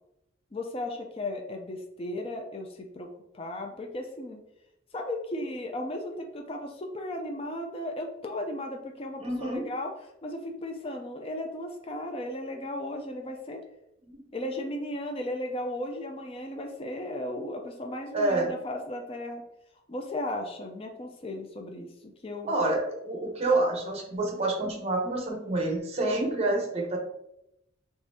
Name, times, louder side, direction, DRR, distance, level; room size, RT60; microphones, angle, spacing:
voice 1, 0.5-3.1 3.3-4.4 4.9-9.9 10.2-13.6 14.3-19.4 19.9-21.9 22.2-22.5, left 1 dB, 30° left, 3 dB, 0.5 m, -35 dB
voice 2, 9.2-9.7 14.1-14.2 18.1-18.5 22.5-27.0, right 2 dB, 30° right, 2 dB, 0.9 m, -28 dB
5.0 x 3.5 x 2.7 m, 0.83 s
head